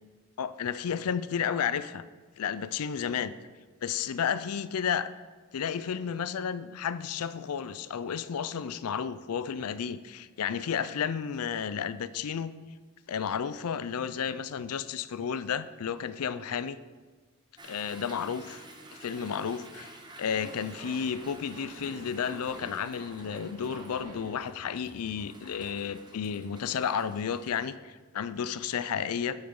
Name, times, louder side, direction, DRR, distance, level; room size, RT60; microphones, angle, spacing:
voice 1, 0.4-2.0 2.4-3.3 3.8-5.1 5.5-12.5 13.1-16.8 17.6-18.6 19.0-29.4, left 7 dB, 75° left, 15 dB, 0.4 m, -32 dB
Toilet flush / Drip / Trickle dribble, 17.6-27.7, right 2 dB, 20° right, 0.9 m, -51 dB
Zipper (clothing), 20.2-24.4, right 1 dB, 90° right, 2.1 m, -48 dB
9.0 x 8.7 x 3.7 m, 1.4 s
head